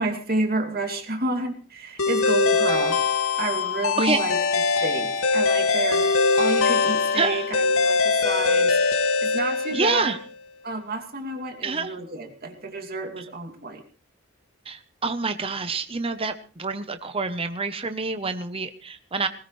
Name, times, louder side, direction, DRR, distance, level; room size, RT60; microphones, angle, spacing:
voice 1, 0.0-3.0 3.4-4.4 4.8-10.2 10.6-13.8, right 2 dB, 45° right, 4 dB, 2.6 m, -30 dB
sound 1, 2.0-10.1, left 4 dB, 80° left, 2.1 m, -22 dB
voice 2, 7.1-7.5 9.7-10.2 11.6-11.9 14.7-19.3, right 4 dB, 25° right, 9 dB, 0.8 m, -27 dB
20.0 x 18.0 x 3.2 m, 0.37 s
head